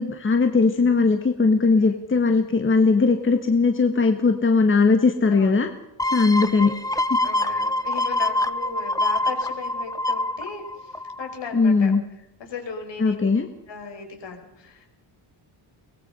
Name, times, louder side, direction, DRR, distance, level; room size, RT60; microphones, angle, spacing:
voice 1, 0.0-5.7 6.1-6.7 7.1-7.2 11.5-12.0 13.0-13.5, left 4 dB, 25° left, 6 dB, 1.5 m, -19 dB
voice 2, 1.7-2.1 5.3-5.7 7.2-11.9 12.4-13.3 13.7-14.9, left 5 dB, 60° left, 4 dB, 5.7 m, -37 dB
sound 1, 6.0-11.5 11.9-12.0, left 1 dB, 5° left, 0.7 m, -25 dB
23.5 x 20.0 x 5.6 m, 0.89 s
wide cardioid pair, 165°, 49 cm